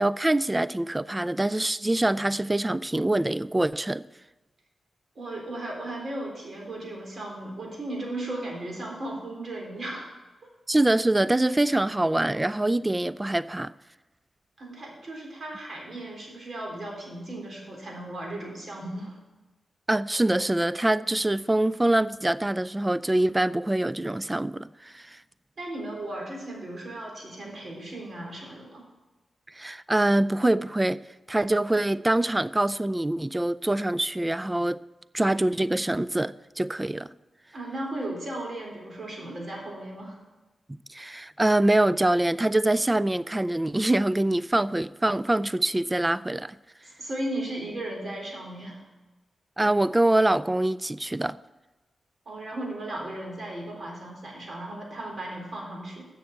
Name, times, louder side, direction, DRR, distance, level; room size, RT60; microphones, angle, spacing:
voice 1, 0.0-4.0 10.7-13.7 19.9-25.2 29.5-31.0 31.3-34.8 35.1-37.1 40.7-46.6 49.6-51.4, right 1 dB, 20° right, 0.3 m, -24 dB
voice 2, 5.2-10.1 14.6-19.2 25.6-28.9 37.5-40.2 46.8-48.8 52.3-56.0, right 1 dB, 60° right, 3.6 m, -36 dB
7.7 x 6.9 x 8.3 m
cardioid pair, 60°, 0 cm